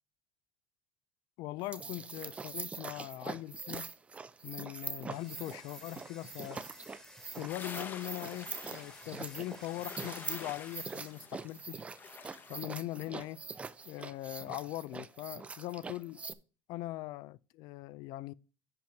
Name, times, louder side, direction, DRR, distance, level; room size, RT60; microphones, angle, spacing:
voice 1, 1.4-3.9 4.4-6.6 7.3-11.8 12.5-13.4 13.8-16.2 16.7-18.3, left 17 dB, 65° left, 0.4 m, -41 dB
sound 1, 1.6-16.3, right 4 dB, 15° right, 0.5 m, -44 dB
Domestic sounds home sounds, 5.1-11.1, left 1 dB, 10° left, 1.3 m, -56 dB
sound 2, 7.5-12.6, left 5 dB, 25° left, 0.9 m, -48 dB
7.8 x 5.3 x 4.5 m
cardioid pair, 140°, 8 cm